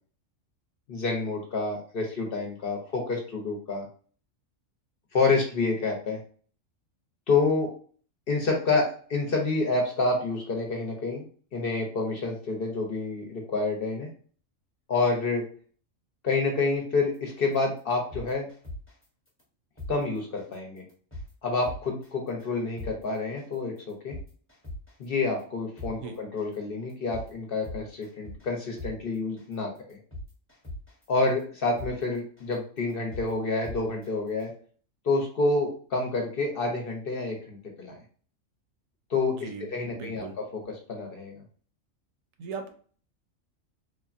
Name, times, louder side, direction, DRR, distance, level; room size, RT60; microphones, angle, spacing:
voice 1, 0.9-3.9 5.1-6.2 7.3-7.7 8.3-11.3 11.5-14.1 14.9-15.4 16.2-18.5 19.9-20.8 21.4-24.2 25.0-30.0 31.1-34.5 35.0-38.0 39.1-41.4, left 3 dB, 55° left, 1 dB, 0.7 m, -28 dB
sound 1, 17.4-17.5 17.9-19.0 19.4-19.5 19.8-19.9 20.4-20.5 20.9-21.3 21.6-22.1 22.4-22.5 22.8-22.9 23.4-23.5 23.9-25.0 25.4-25.5 25.8-25.9 26.4-26.5 26.9-27.3 27.6-28.5 28.8-28.9 29.4-29.5 29.9-31.0 31.4-31.5 31.8-31.9 32.4-32.5 32.9-33.3 33.6-34.1 34.4-34.5, left 1 dB, 15° left, 0.6 m, -39 dB
voice 2, 39.3-40.3 42.4-42.7, right 5 dB, 85° right, 6 dB, 1.0 m, -39 dB
3.4 x 2.1 x 2.4 m, 0.44 s
omnidirectional pair, 1.4 m